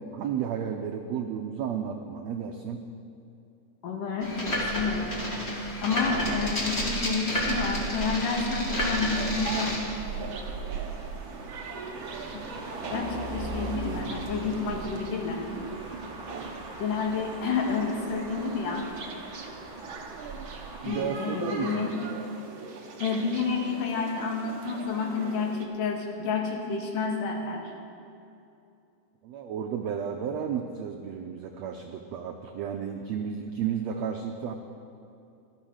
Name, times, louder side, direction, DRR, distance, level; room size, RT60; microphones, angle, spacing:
voice 1, 0.0-2.9 20.8-21.8 29.2-34.5, right 8 dB, 85° right, 4 dB, 1.5 m, -33 dB
voice 2, 3.8-5.2 5.5-9.7 12.3-12.4 12.9-15.4 16.8-18.9 20.8-22.0 23.0-27.6, left 4 dB, 75° left, 0 dB, 3.2 m, -30 dB
sound 1, 4.2-9.8, left 1 dB, 25° left, 1.9 m, -30 dB
Motor vehicle (road), 6.1-20.8, right 4 dB, 45° right, 0.9 m, -40 dB
sound 2, 9.1-25.6, right 4 dB, 60° right, 1.3 m, -41 dB
13.5 x 13.0 x 6.3 m, 2.6 s
omnidirectional pair, 3.9 m